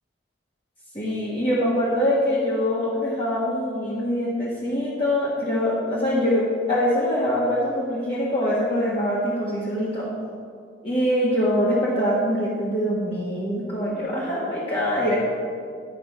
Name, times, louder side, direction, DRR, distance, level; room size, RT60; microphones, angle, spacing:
voice 1, 0.9-10.1 10.8-15.1, equal, 30° left, -7 dB, 1.3 m, -24 dB
11.0 x 5.2 x 5.5 m, 2.2 s
head